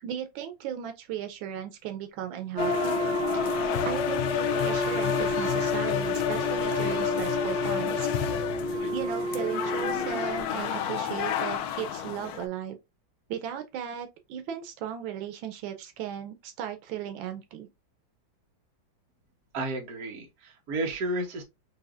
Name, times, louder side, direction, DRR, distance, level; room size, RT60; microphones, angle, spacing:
voice 1, 0.0-3.0 3.3-3.4 3.8-8.1 8.9-12.8 13.3-17.7, right 9 dB, 85° right, 1.5 m, -36 dB
Wind instrument woodwind instrument, 2.5-10.5, right 2 dB, 35° right, 1.1 m, -32 dB
sound 1, 2.6-12.5, left 9 dB, 70° left, 0.9 m, -30 dB
voice 2, 19.5-21.4, right 2 dB, 55° right, 1.5 m, -32 dB
5.1 x 2.7 x 2.4 m
omnidirectional pair, 2.1 m